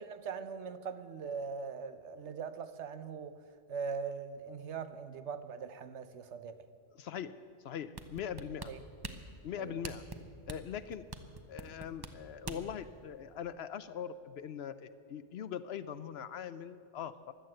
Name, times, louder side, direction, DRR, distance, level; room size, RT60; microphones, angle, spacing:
voice 1, 0.0-3.4 3.7-6.7 8.7-8.8 9.6-9.8, right 5 dB, 70° right, 1.0 m, -41 dB
voice 2, 7.0-7.3 7.6-8.7 9.4-10.0 10.5-11.0 11.5-17.3, left 8 dB, 65° left, 0.8 m, -41 dB
sound 1, 8.0-12.8 13.3-13.4, right 3 dB, 25° right, 0.7 m, -44 dB
16.0 x 11.5 x 7.7 m
omnidirectional pair, 1.2 m